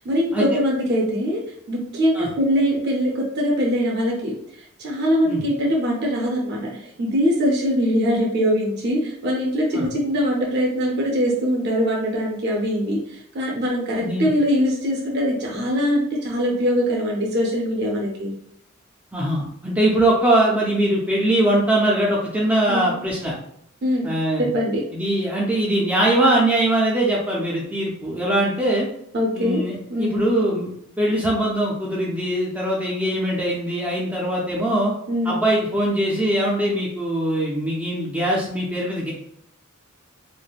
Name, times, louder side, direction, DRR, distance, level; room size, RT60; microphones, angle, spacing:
voice 1, 0.0-1.4 1.7-4.4 4.8-18.3 22.7-23.0 23.8-24.1 24.4-24.8 26.2-26.3 29.1-29.6 29.9-30.3 35.1-35.4, equal, 50° right, -2 dB, 0.6 m, -22 dB
voice 2, 14.0-14.3 19.1-23.3 24.0-24.5 24.9-28.9 29.3-30.7 31.0-34.9 35.3-39.1, right 1 dB, 5° right, -5 dB, 0.4 m, -21 dB
3.2 x 2.1 x 2.3 m, 0.71 s
head